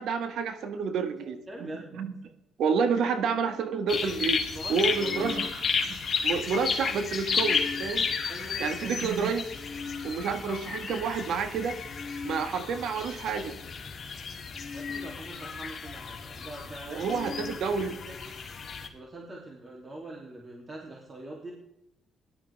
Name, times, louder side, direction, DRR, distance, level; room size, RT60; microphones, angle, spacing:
voice 1, 0.0-2.1 2.6-4.4 4.7-6.0 6.2-8.1 8.6-9.5 10.0-11.8 12.2-13.5 16.9-17.9, right 5 dB, 75° right, 8 dB, 1.7 m, -29 dB
voice 2, 1.5-2.0 4.5-5.3 8.3-8.9 14.7-17.3 17.7-18.4 18.9-21.5, right 1 dB, 30° right, -1 dB, 3.0 m, -43 dB
sound 1, 3.9-18.9, left 5 dB, 45° left, 2.7 m, -33 dB
18.0 x 12.0 x 3.6 m, 0.83 s
cardioid pair, 90°, 0 cm